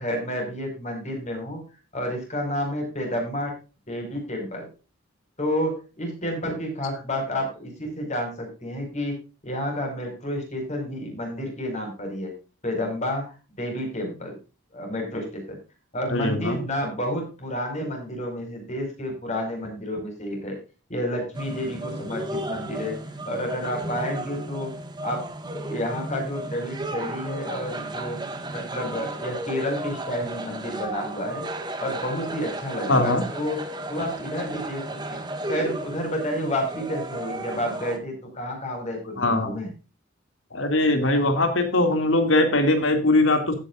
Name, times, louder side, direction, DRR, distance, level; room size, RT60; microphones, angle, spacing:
voice 1, 0.0-1.6 1.9-3.5 3.9-4.7 5.4-9.2 9.4-12.3 12.6-13.3 13.6-14.4 14.7-15.6 15.9-20.6 20.9-23.0 23.2-24.7 25.0-25.2 25.7-28.2 28.5-31.4 31.8-33.6 33.9-35.2 35.5-39.7, equal, 35° left, 3 dB, 5.1 m, -30 dB
voice 2, 16.1-16.6 32.9-33.2 39.2-39.5 40.5-43.5, left 2 dB, 75° left, 6 dB, 2.4 m, -21 dB
sound 1, 21.3-38.0, right 1 dB, 20° right, 1.6 m, -34 dB
15.5 x 9.1 x 2.5 m, 0.32 s
head